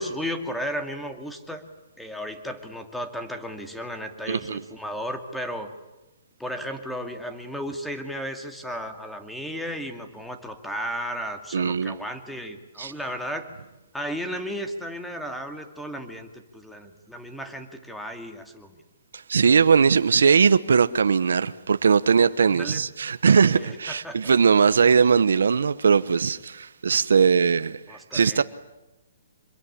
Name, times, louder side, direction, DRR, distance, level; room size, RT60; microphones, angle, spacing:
voice 1, 0.0-1.6 2.0-5.7 6.4-13.5 13.9-18.8 22.5-22.8 23.6-24.3 27.9-28.4, equal, ahead, 2.3 m, -34 dB
voice 2, 4.3-4.6 11.5-12.0 12.8-12.9 19.1-28.4, right 6 dB, 85° right, 0.9 m, -20 dB
26.5 x 22.0 x 9.9 m
hypercardioid pair, 155°, 0 cm